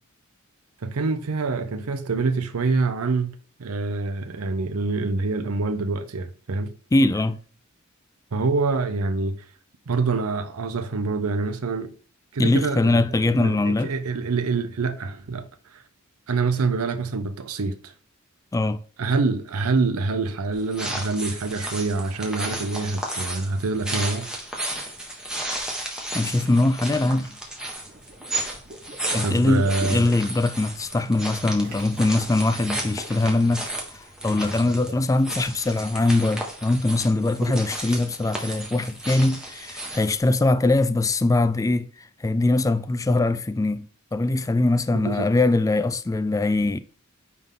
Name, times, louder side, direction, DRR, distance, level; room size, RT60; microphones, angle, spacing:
voice 1, 0.8-3.3 3.6-6.7 8.3-9.4 9.9-11.9 12.3-15.5 15.7-15.8 16.3-17.9 19.0-24.3 29.2-30.1 44.9-45.3, right 3 dB, 90° right, 0.6 m, -26 dB
voice 2, 6.9-7.4 12.4-13.9 18.5-18.8 26.1-27.3 29.1-33.7 34.2-41.9 42.2-43.9 44.1-46.8, left 2 dB, 15° left, 0.3 m, -22 dB
sound 1, 20.5-40.2, right 1 dB, 5° right, 1.4 m, -34 dB
Water / Liquid, 27.9-30.3 31.4-32.4 33.9-34.9, right 2 dB, 50° right, 2.6 m, -42 dB
9.4 x 3.7 x 3.7 m
head